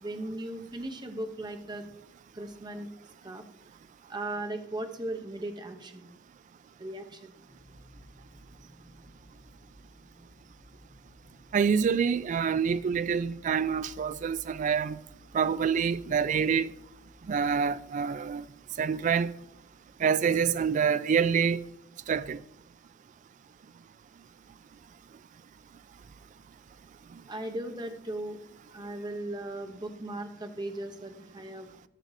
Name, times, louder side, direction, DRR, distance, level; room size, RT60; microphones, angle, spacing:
voice 1, 0.0-1.9 2.3-2.9 3.2-3.4 4.1-6.1 6.8-7.3 27.3-28.4 28.7-31.7, right 1 dB, 25° right, 0.8 m, -37 dB
sound 1, 7.5-20.7, equal, 40° left, 3.3 m, -56 dB
voice 2, 11.5-15.0 15.3-16.7 17.3-18.4 18.8-19.3 20.0-21.6 22.1-22.4, right 6 dB, 45° right, 0.3 m, -26 dB
13.0 x 6.4 x 2.7 m
head